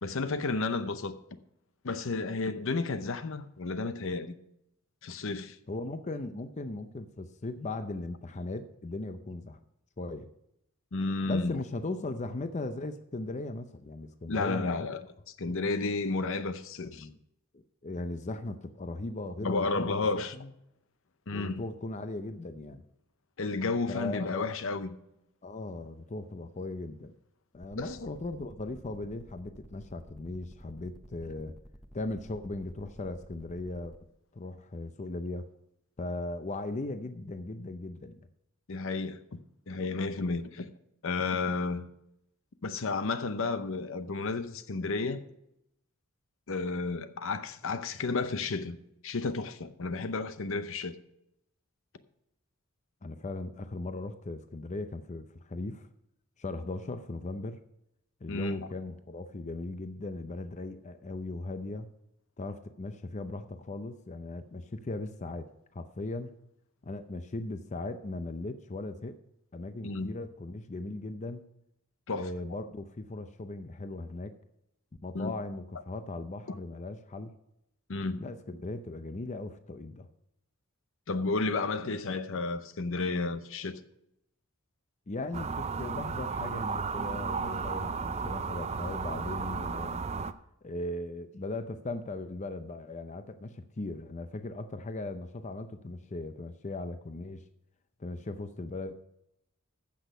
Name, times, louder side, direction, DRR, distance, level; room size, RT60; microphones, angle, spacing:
voice 1, 0.0-1.1 1.8-4.3 5.0-5.6 10.9-11.6 14.3-15.0 15.4-17.1 19.4-20.3 21.3-21.6 23.4-25.0 27.8-28.0 38.7-39.4 39.7-40.7 41.0-41.9 42.6-45.2 46.5-48.8 49.0-51.0 58.3-58.7 69.8-70.1 72.1-72.3 75.1-75.3 77.9-78.2 81.1-83.8, left 3 dB, 65° left, 0.7 m, -32 dB
voice 2, 5.7-9.6 10.0-10.3 11.3-14.9 15.4-15.5 16.8-17.2 17.5-20.5 21.3-22.8 23.9-24.5 25.4-27.1 27.5-31.5 31.9-34.0 34.3-35.4 36.0-38.2 53.0-55.9 56.4-57.6 58.2-61.9 62.4-65.5 65.7-66.4 66.8-69.2 69.5-71.4 72.1-74.3 75.0-77.3 78.2-80.1 85.1-90.0 90.6-97.4 98.0-98.9, left 2 dB, 35° left, 0.5 m, -38 dB
sound 1, 27.5-34.0, equal, 5° left, 0.7 m, -51 dB
sound 2, 85.3-90.3, right 5 dB, 30° right, 0.4 m, -34 dB
14.5 x 6.2 x 5.4 m
head